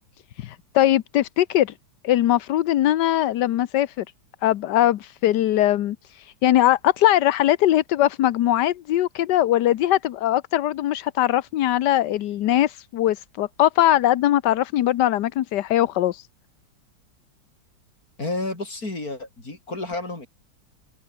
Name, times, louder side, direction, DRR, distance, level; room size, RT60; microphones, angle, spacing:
voice 1, 0.4-1.7 2.0-4.0 4.4-16.3, left 13 dB, 70° left, 1.3 m, -21 dB
voice 2, 18.2-20.3, left 2 dB, 50° left, 6.5 m, -31 dB
open air
omnidirectional pair, 2.1 m